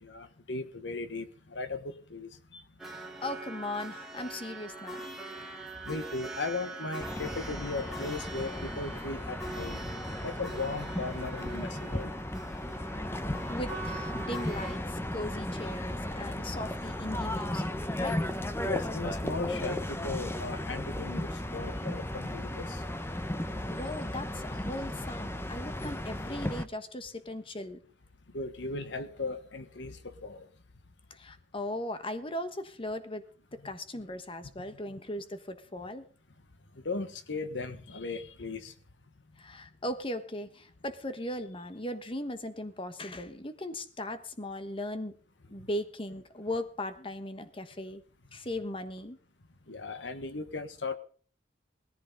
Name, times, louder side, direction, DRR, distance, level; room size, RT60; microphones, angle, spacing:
voice 1, 0.0-2.6 5.8-9.8 10.2-12.1 18.7-22.8 28.3-30.5 33.6-33.7 36.8-38.7 49.7-51.0, left 3 dB, 75° left, 11 dB, 1.3 m, -37 dB
sound 1, 2.8-14.8, right 2 dB, ahead, 2.7 m, -43 dB
voice 2, 2.9-5.2 13.5-18.2 23.6-27.8 31.1-33.2 33.6-36.0 39.4-45.2 45.5-48.0 48.3-49.2, left 1 dB, 30° left, 10 dB, 1.3 m, -38 dB
sound 2, 7.0-26.6, left 1 dB, 15° left, 0.9 m, -35 dB
19.5 x 14.0 x 4.0 m, 0.43 s
head